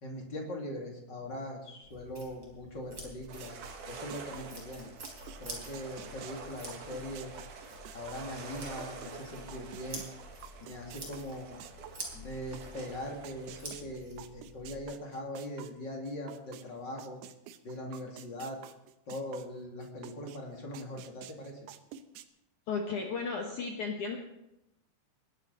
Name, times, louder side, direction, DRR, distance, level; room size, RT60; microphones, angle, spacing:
voice 1, 0.0-3.5 3.9-4.9 5.4-7.3 7.9-10.1 10.7-11.6 12.1-17.2 17.6-18.6 19.1-21.6, left 1 dB, 35° left, 0 dB, 2.0 m, -41 dB
sound 1, 1.8-14.8, right 1 dB, 25° right, 4.1 m, -48 dB
sound 2, 3.2-9.1 9.5-16.6 17.0-20.4 20.7-22.2, right 11 dB, 85° right, 2.3 m, -49 dB
sound 3, 3.3-13.6, right 5 dB, 55° right, 2.5 m, -48 dB
voice 2, 22.7-24.2, left 5 dB, 70° left, 1 dB, 1.8 m, -34 dB
20.0 x 11.5 x 4.0 m, 0.87 s
omnidirectional pair, 5.5 m